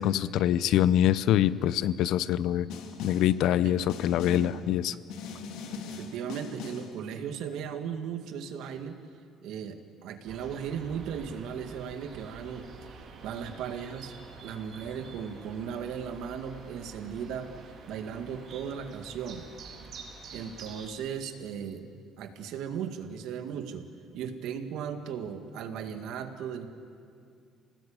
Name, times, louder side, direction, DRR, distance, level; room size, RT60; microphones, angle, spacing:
voice 1, 0.0-2.7 3.0-4.9, left 11 dB, 65° left, 16 dB, 0.7 m, -24 dB
Snare drum, 2.7-3.4 3.9-4.6 5.1-7.0, left 5 dB, 90° left, 2.6 m, -41 dB
voice 2, 4.3-4.6 5.9-9.0 9.4-12.7 13.2-14.1 14.4-17.5 17.9-19.5 20.3-21.9 22.2-23.9 24.1-26.7, right 7 dB, 70° right, 7 dB, 1.9 m, -37 dB
sound 1, 10.3-20.9, right 5 dB, 50° right, 3.4 m, -48 dB
27.0 x 18.5 x 8.9 m, 2.3 s
cardioid pair, 165°, 0 cm